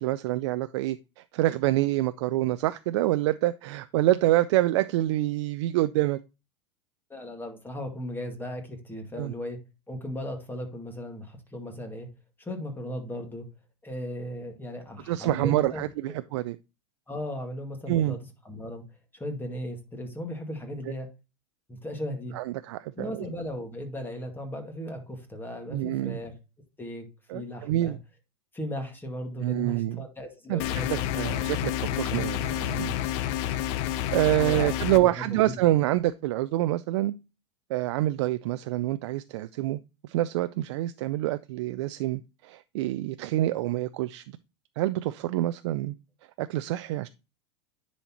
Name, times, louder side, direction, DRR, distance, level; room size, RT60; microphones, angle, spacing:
voice 1, 0.0-6.2 9.1-9.3 15.1-16.6 17.9-18.2 22.3-23.2 25.7-26.2 27.3-28.0 29.4-30.1 30.5-32.9 34.1-37.1 37.7-44.4 44.8-45.9 46.4-47.1, right 15 dB, 65° right, 0.4 m, -27 dB
voice 2, 7.1-9.6 9.9-12.1 12.4-13.5 13.8-16.2 17.1-18.8 19.1-21.1 21.7-22.4 23.0-26.3 26.8-27.1 27.3-28.0 28.5-31.3 34.4-35.7, equal, 15° left, 2.1 m, -37 dB
sound 1, 30.6-35.0, left 12 dB, 60° left, 0.7 m, -29 dB
10.0 x 4.2 x 2.9 m
hypercardioid pair, 95°, 15 cm